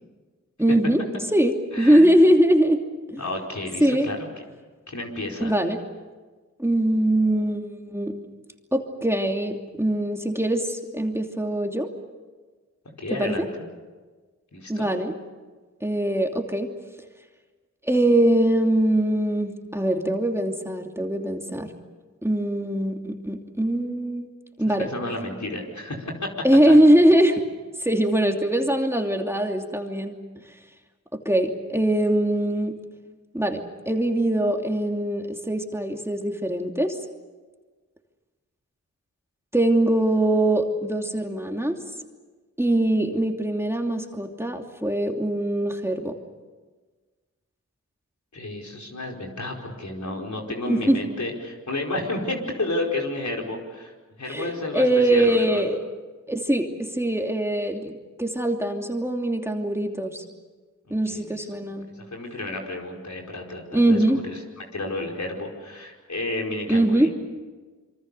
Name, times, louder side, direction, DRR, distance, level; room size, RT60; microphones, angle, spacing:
voice 1, 0.6-1.0 1.3-2.8 3.1-3.2 3.8-4.1 5.4-5.8 6.6-8.2 8.7-11.9 13.1-13.5 14.7-15.1 15.8-16.7 17.8-21.7 22.2-24.3 24.6-24.9 26.4-27.4 27.8-30.1 31.2-32.8 33.3-37.0 39.5-41.8 42.6-46.2 50.7-51.0 54.3-55.8 56.3-60.2 60.9-61.9 63.7-64.2 66.7-67.1, right 1 dB, 10° right, 3 dB, 2.8 m, -22 dB
voice 2, 1.7-2.1 3.2-4.2 4.9-5.5 13.0-13.5 14.5-14.9 24.7-26.1 26.7-26.8 48.3-53.9 54.2-55.6 60.9-61.4 62.1-64.4 64.7-67.1, left 2 dB, 65° left, 0 dB, 4.9 m, -31 dB
26.5 x 24.0 x 6.8 m, 1.3 s
cardioid pair, 40°, 31 cm